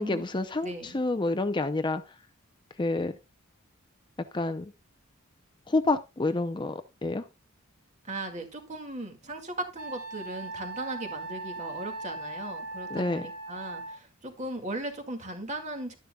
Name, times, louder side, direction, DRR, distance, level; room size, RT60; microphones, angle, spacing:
voice 1, 0.0-2.2 2.8-3.2 4.3-4.7 5.7-7.3 12.9-13.2, left 2 dB, 20° left, 9 dB, 0.5 m, -28 dB
voice 2, 0.6-1.0 8.1-16.0, right 1 dB, 35° right, 4 dB, 2.1 m, -37 dB
Wind instrument woodwind instrument, 9.8-14.0, right 2 dB, 80° right, 2.8 m, -39 dB
11.5 x 10.5 x 2.3 m, 0.25 s
head